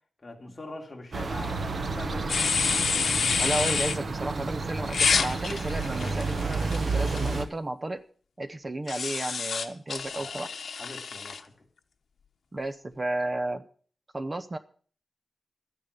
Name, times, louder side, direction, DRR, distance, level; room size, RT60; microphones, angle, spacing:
voice 1, 0.2-2.6 10.1-10.4 10.7-11.5, left 2 dB, 25° left, 2.8 m, -43 dB
sound 1, 1.1-7.5, right 3 dB, 50° right, 1.2 m, -31 dB
sound 2, 2.3-4.0 4.9-7.4 8.9-11.4, left 5 dB, 75° left, 1.0 m, -28 dB
voice 2, 3.4-8.0 8.4-10.5 12.5-13.6 14.1-14.6, right 2 dB, 25° right, 0.8 m, -33 dB
13.0 x 10.0 x 6.8 m
wide cardioid pair, 155°, 0 cm